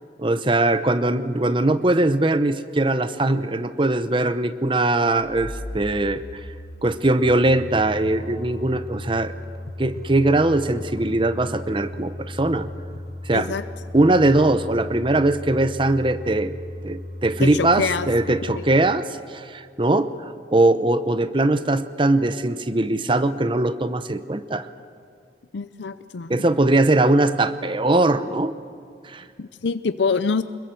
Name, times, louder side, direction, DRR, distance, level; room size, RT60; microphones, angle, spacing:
voice 1, 0.2-6.2 6.8-9.3 9.8-12.7 13.2-13.5 13.9-16.6 16.8-24.7 26.3-28.5 29.0-29.3, right 2 dB, 30° right, 12 dB, 0.8 m, -21 dB
sound 1, 5.0-18.7, left 1 dB, 60° left, 1.5 m, -36 dB
voice 2, 13.3-13.6 17.4-18.6 25.5-26.4 29.4-30.4, left 5 dB, 80° left, 12 dB, 0.6 m, -26 dB
26.0 x 21.5 x 7.8 m, 2.3 s
head